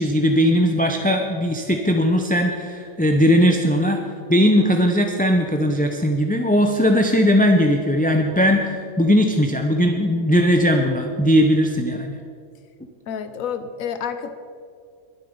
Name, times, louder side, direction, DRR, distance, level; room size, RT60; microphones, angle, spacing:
voice 1, 0.0-4.0 4.3-12.1, equal, 10° left, 3 dB, 0.6 m, -18 dB
voice 2, 13.1-14.3, left 7 dB, 80° left, 10 dB, 1.2 m, -29 dB
22.5 x 8.4 x 5.4 m, 2.4 s
omnidirectional pair, 1.4 m